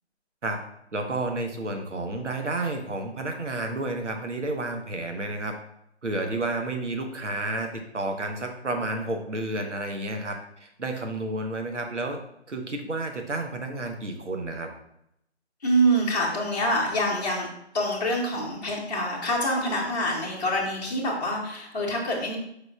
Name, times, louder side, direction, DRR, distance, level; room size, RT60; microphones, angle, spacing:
voice 1, 0.9-5.5 6.0-12.2 12.5-14.7, right 2 dB, 90° right, 4 dB, 0.9 m, -31 dB
voice 2, 15.6-17.5 17.7-22.4, right 1 dB, 35° left, -6 dB, 0.8 m, -26 dB
4.8 x 2.2 x 4.8 m, 0.77 s
figure-of-eight pair, 155°, 35 cm